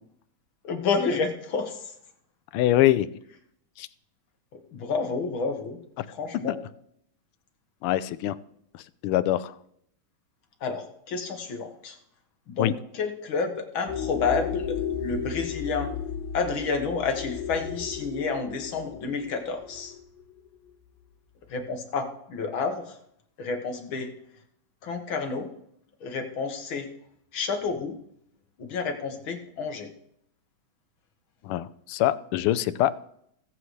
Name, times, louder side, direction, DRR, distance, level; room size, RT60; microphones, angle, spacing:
voice 1, 0.6-1.8 4.5-5.8 6.1-6.6 10.6-12.0 12.5-15.9 16.3-19.9 21.5-23.0 23.4-24.1 24.8-25.5 26.0-26.9 27.3-28.0 28.6-29.9, left 4 dB, 70° left, 5 dB, 2.2 m, -30 dB
voice 2, 2.5-3.1 3.8-3.9 6.0-6.1 6.5-6.6 7.8-8.4 8.7-9.5 12.6-12.7 31.4-33.1, left 14 dB, 85° left, 16 dB, 1.5 m, -24 dB
sound 1, 13.9-20.4, left 7 dB, 45° left, 0.7 m, -34 dB
21.0 x 7.7 x 3.2 m, 0.71 s
omnidirectional pair, 2.4 m